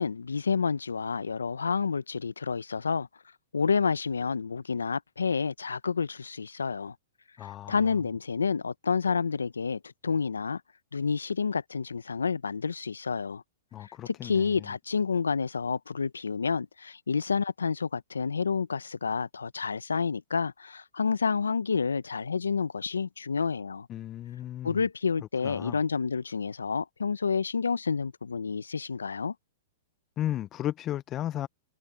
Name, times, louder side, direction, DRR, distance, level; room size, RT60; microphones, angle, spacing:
voice 1, 0.0-3.1 3.5-6.9 7.4-10.6 10.9-13.4 13.8-23.9 24.6-29.3, left 5 dB, 85° left, 1.0 m, -29 dB
voice 2, 7.4-8.0 13.7-14.7 23.9-24.9 25.4-25.8 30.2-31.5, left 12 dB, 30° left, 0.8 m, -35 dB
hypercardioid pair, 115°, 0 cm